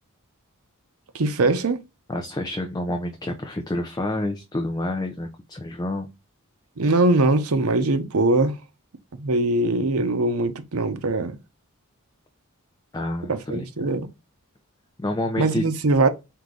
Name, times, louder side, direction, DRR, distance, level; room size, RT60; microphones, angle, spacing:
voice 1, 1.1-1.8 6.8-8.5 9.2-11.4 13.3-14.1 15.4-16.1, right 2 dB, 85° right, 0.7 m, -21 dB
voice 2, 2.1-6.1 12.9-13.9 15.0-15.6, left 1 dB, 20° left, 0.5 m, -28 dB
4.6 x 2.7 x 3.8 m
head